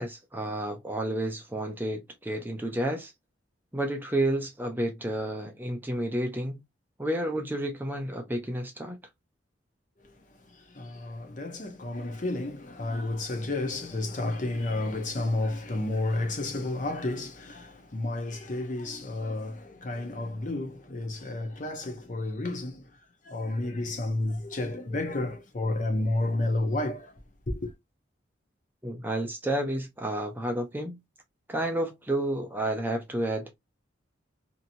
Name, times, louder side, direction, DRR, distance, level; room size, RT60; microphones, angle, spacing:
voice 1, 0.0-3.1 3.7-6.6 7.0-9.0 28.8-31.0 31.5-33.5, right 1 dB, 10° right, 0.6 m, -30 dB
voice 2, 10.3-23.0 23.2-27.2 27.5-27.7, left 2 dB, 40° left, 0.7 m, -31 dB
2.8 x 2.8 x 2.6 m
head